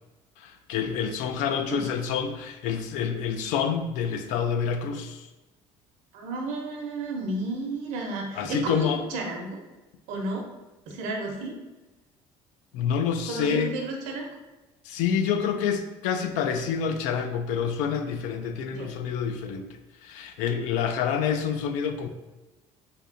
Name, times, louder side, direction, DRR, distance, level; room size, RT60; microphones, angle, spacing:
voice 1, 0.4-5.3 8.4-9.0 12.7-13.7 14.9-19.7 20.0-22.1, left 7 dB, 85° left, 8 dB, 0.4 m, -27 dB
voice 2, 6.1-9.6 10.1-10.4 10.9-11.5 13.3-14.3 18.8-18.9, right 2 dB, 90° right, 1 dB, 0.8 m, -32 dB
3.5 x 2.7 x 2.6 m, 1.1 s
cardioid pair, 150°, 13 cm